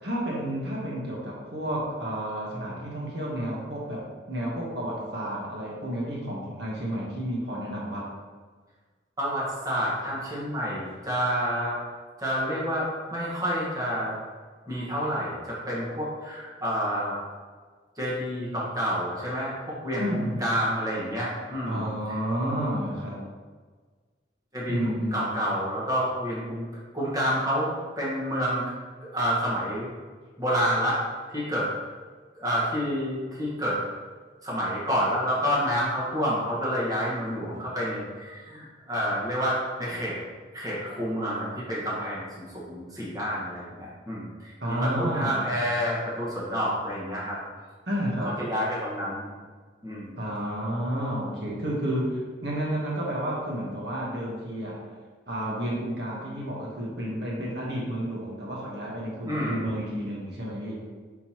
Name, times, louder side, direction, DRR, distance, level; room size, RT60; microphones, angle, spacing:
voice 1, 0.0-8.1 20.0-20.4 21.7-23.2 24.7-25.3 44.6-45.5 47.9-48.4 50.2-54.8 55.3-60.8, equal, 65° right, -4 dB, 1.3 m, -31 dB
voice 2, 9.2-11.8 12.2-14.2 14.7-17.2 18.0-22.2 24.5-24.7 25.1-26.6 26.9-28.6 29.0-29.9 30.4-31.0 31.3-31.7 32.4-33.8 34.4-40.2 40.5-47.4 48.5-49.3 49.8-50.2 59.2-59.6, equal, 20° right, -7 dB, 1.5 m, -29 dB
9.1 x 3.9 x 3.0 m, 1.5 s
head